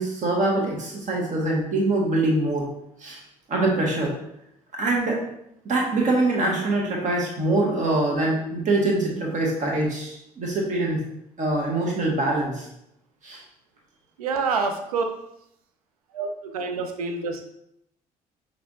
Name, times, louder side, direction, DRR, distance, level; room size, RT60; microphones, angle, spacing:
voice 1, 0.0-2.7 3.0-3.2 3.5-4.1 4.8-5.2 5.6-11.0 11.4-12.7 13.2-13.4, right 2 dB, 40° right, -2 dB, 1.5 m, -24 dB
voice 2, 14.2-15.0 16.1-17.4, right 4 dB, 75° right, 5 dB, 0.5 m, -27 dB
5.8 x 3.3 x 2.7 m, 0.78 s
figure-of-eight pair, 50°, 19 cm